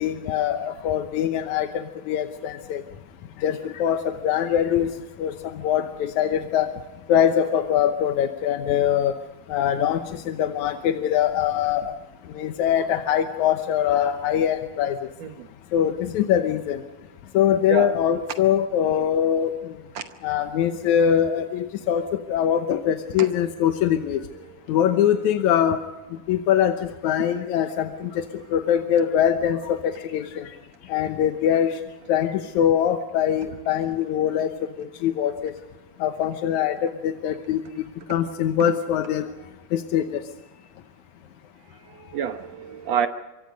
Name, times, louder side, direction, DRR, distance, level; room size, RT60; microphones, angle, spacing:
voice 1, 0.0-2.8 3.4-4.9 5.2-6.7 7.1-9.1 9.5-11.9 12.3-15.0 15.7-16.8 17.3-19.8 20.2-24.2 24.7-25.8 26.3-28.2 28.5-30.5 30.9-31.7 32.1-35.5 36.0-37.6 38.1-39.3 39.7-40.2, left 9 dB, 70° left, 7 dB, 1.9 m, -23 dB
voice 2, 17.7-18.0 19.9-20.0 23.2-23.3 24.5-24.6 41.7-43.1, right 8 dB, 70° right, 7 dB, 1.6 m, -28 dB
25.5 x 24.0 x 5.2 m, 1.1 s
omnidirectional pair, 4.3 m